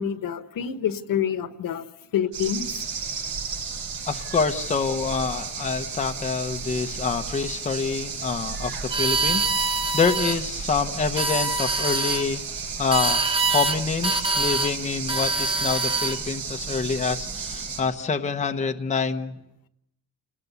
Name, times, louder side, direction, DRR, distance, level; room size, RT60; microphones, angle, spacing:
voice 1, 0.0-1.8 2.1-2.8, left 8 dB, 65° left, 10 dB, 1.4 m, -27 dB
sound 1, 2.3-17.8, right 5 dB, 85° right, 7.6 m, -33 dB
voice 2, 4.1-19.3, left 5 dB, 20° left, 4 dB, 0.9 m, -27 dB
sound 2, 8.9-10.4 11.0-12.2 12.9-13.8 14.0-14.7 15.1-16.2, right 3 dB, 15° right, 1.1 m, -24 dB
30.0 x 19.5 x 8.1 m, 0.82 s
cardioid pair, 175°, 36 cm